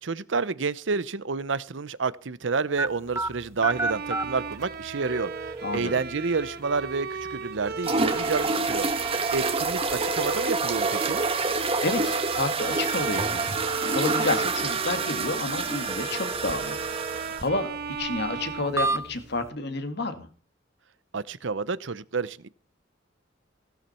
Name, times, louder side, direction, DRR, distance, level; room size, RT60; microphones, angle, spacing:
voice 1, 0.0-8.9 9.3-11.2 21.1-22.5, right 4 dB, 70° right, 0.7 m, -29 dB
sound 1, 2.8-19.5, right 2 dB, 15° right, 0.9 m, -36 dB
Bowed string instrument, 3.6-19.5, right 4 dB, 55° right, 1.3 m, -36 dB
voice 2, 5.6-6.0 11.6-16.8 17.1-20.3, left 2 dB, 60° left, 2.0 m, -30 dB
sound 2, 7.8-17.5, right 4 dB, 30° right, 1.6 m, -28 dB
16.0 x 12.5 x 4.4 m
head